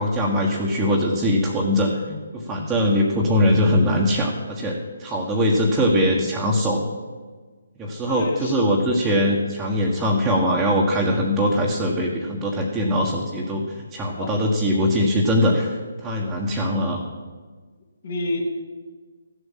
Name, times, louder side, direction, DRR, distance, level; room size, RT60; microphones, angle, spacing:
voice 1, 0.0-6.8 7.8-17.0, equal, 10° right, -4 dB, 1.6 m, -21 dB
voice 2, 8.1-8.6 14.2-14.4 18.0-18.4, left 2 dB, 50° left, 1 dB, 3.0 m, -29 dB
15.0 x 8.1 x 7.6 m, 1.4 s
figure-of-eight pair, 140°, 0 cm